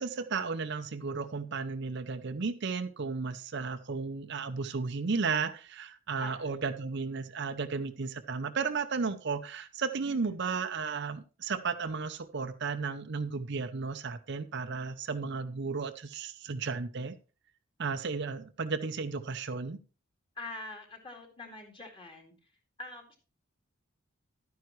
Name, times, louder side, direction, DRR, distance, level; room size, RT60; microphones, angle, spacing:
voice 1, 0.0-17.1 17.8-19.8, right 4 dB, 55° right, 10 dB, 0.6 m, -34 dB
voice 2, 6.2-6.6 10.0-10.4 20.4-22.3 22.8-23.2, left 2 dB, 25° left, 3 dB, 2.1 m, -45 dB
12.0 x 9.4 x 3.1 m, 0.34 s
head